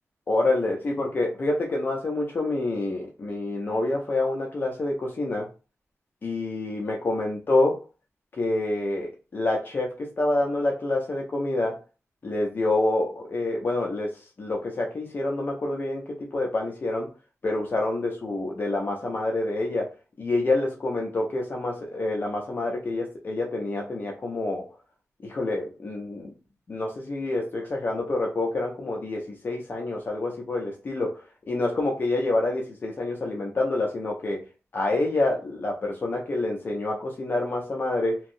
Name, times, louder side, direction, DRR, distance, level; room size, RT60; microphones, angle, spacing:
voice 1, 0.3-5.5 6.2-7.8 8.3-11.8 12.2-16.0 16.3-17.1 17.4-19.9 20.2-24.7 25.2-26.3 26.7-31.2 31.5-34.4 34.7-38.2, left 2 dB, 40° left, -1 dB, 0.6 m, -27 dB
3.0 x 2.6 x 2.6 m, 0.33 s
wide cardioid pair, 175°, 5 cm